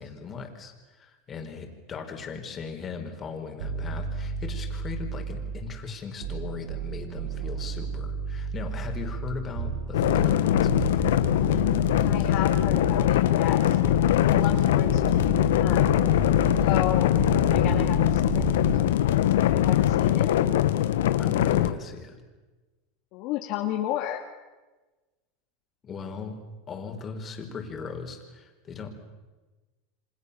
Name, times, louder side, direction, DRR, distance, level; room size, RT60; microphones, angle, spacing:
voice 1, 0.0-11.1 21.2-22.2 25.8-26.4 26.7-28.9, left 5 dB, 25° left, 4 dB, 4.9 m, -38 dB
sound 1, 3.6-5.8 6.2-13.3 13.8-18.8, right 5 dB, 70° right, 5.9 m, -33 dB
sound 2, 9.9-21.7, left 12 dB, 85° left, 1.6 m, -22 dB
voice 2, 12.0-13.9 14.2-16.0 16.6-17.1 17.5-18.7 19.4-20.3 23.1-24.2, left 12 dB, 55° left, 3 dB, 2.3 m, -33 dB
28.5 x 26.0 x 7.1 m, 1.2 s
supercardioid pair, 130°, 0 cm